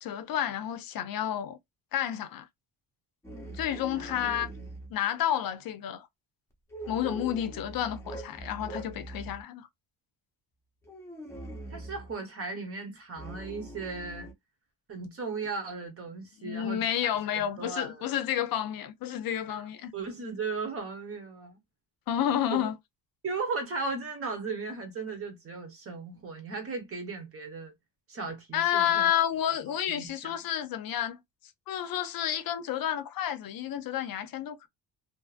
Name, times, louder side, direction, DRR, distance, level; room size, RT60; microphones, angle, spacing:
voice 1, 0.0-1.6 1.9-2.5 3.5-4.5 4.9-6.1 6.9-9.7 16.4-19.9 22.1-22.8 28.5-31.2 31.7-34.7, left 10 dB, 60° left, 0.6 m, -30 dB
sound 1, 3.2-4.9 6.7-9.4 10.8-12.1 13.1-14.3, right 1 dB, 5° left, 0.7 m, -42 dB
voice 2, 11.7-14.3 14.9-17.1 17.3-18.1 19.5-19.6 19.9-21.6 22.5-22.7 23.2-27.7 28.1-29.1 29.7-30.3, right 4 dB, 35° right, 0.9 m, -37 dB
2.6 x 2.4 x 2.4 m
cardioid pair, 180°, 39 cm